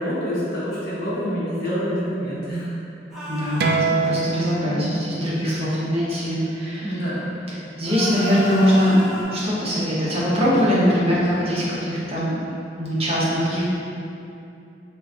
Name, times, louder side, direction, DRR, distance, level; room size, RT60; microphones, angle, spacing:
voice 1, 0.0-2.7 4.6-5.0 6.8-7.3, equal, 60° left, -8 dB, 1.1 m, -27 dB
sound 1, 3.1-3.9 7.8-9.2, left 1 dB, ahead, 0.9 m, -32 dB
voice 2, 3.3-7.0 7.5-12.3 12.8-13.6, equal, 35° right, -8 dB, 0.8 m, -22 dB
sound 2, 3.6-8.8, right 3 dB, 65° right, 0.3 m, -28 dB
3.8 x 2.4 x 3.7 m, 2.7 s
head